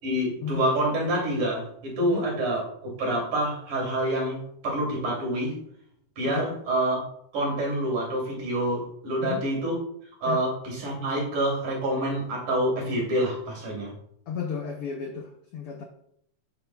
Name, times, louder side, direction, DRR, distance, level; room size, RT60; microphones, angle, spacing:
voice 1, 0.0-2.6 3.0-5.6 6.2-7.0 7.3-9.8 10.2-13.9, right 1 dB, 75° right, -3 dB, 4.5 m, -27 dB
voice 2, 14.3-15.8, left 6 dB, 85° left, 4 dB, 1.2 m, -33 dB
10.5 x 8.3 x 2.3 m, 0.70 s
omnidirectional pair, 3.5 m